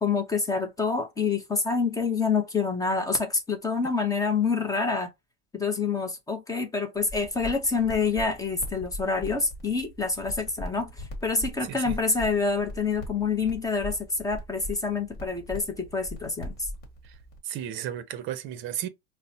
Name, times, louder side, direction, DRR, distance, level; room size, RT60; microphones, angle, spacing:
voice 1, 0.0-5.1 5.5-16.7, left 4 dB, 10° left, 0.6 m, -27 dB
sound 1, 7.0-17.4, equal, 30° left, 1.3 m, -40 dB
voice 2, 11.6-11.9 17.0-17.1 17.4-18.9, right 11 dB, 40° right, 0.7 m, -34 dB
5.4 x 2.1 x 2.6 m
supercardioid pair, 140°, 32 cm